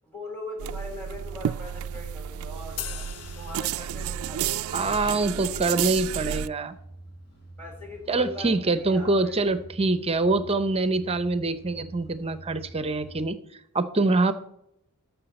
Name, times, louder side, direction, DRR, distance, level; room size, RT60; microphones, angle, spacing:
voice 1, 0.0-6.4 7.6-9.4, left 2 dB, 10° left, 0 dB, 4.2 m, -42 dB
sound 1, 0.6-6.5, right 10 dB, 65° right, 0.3 m, -31 dB
sound 2, 1.1-13.3, right 1 dB, 45° left, 2.8 m, -47 dB
sound 3, 2.8-4.4, left 10 dB, 80° left, 0.6 m, -40 dB
voice 2, 4.7-6.7 8.1-13.4 13.7-14.3, right 3 dB, 25° right, 11 dB, 0.7 m, -25 dB
14.0 x 5.8 x 4.3 m, 0.76 s
head